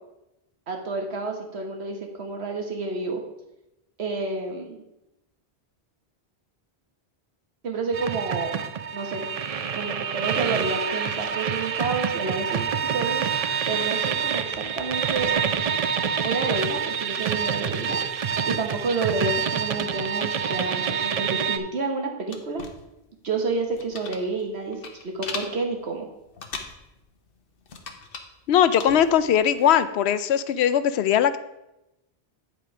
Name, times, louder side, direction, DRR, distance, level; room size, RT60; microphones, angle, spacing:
voice 1, 0.7-3.2 4.0-4.8 7.6-8.6 8.9-9.3 9.7-15.3 16.2-18.0 18.5-22.6 23.2-24.8 25.0-26.1, right 3 dB, 90° right, 2 dB, 1.6 m, -29 dB
sound 1, 7.9-21.6, right 7 dB, 50° right, 0.5 m, -27 dB
sound 2, 22.3-29.7, left 4 dB, 65° left, 1.1 m, -40 dB
voice 2, 28.5-31.4, left 9 dB, 85° left, 13 dB, 0.8 m, -20 dB
9.3 x 5.0 x 4.9 m, 0.91 s
omnidirectional pair, 1.1 m